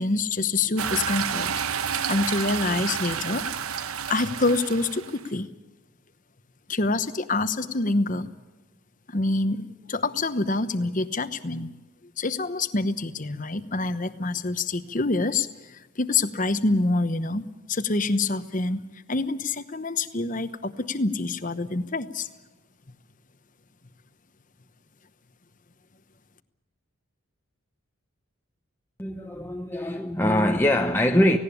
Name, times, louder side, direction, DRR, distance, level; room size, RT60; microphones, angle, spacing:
voice 1, 0.0-1.5 2.1-3.4 4.1-5.5 6.7-8.3 9.1-11.8 12.2-22.3, left 3 dB, 40° left, 1.0 m, -26 dB
sound 1, 0.8-5.3, right 7 dB, 90° right, 1.0 m, -30 dB
voice 2, 29.0-31.4, left 1 dB, 10° left, 0.9 m, -22 dB
18.5 x 17.5 x 9.8 m
head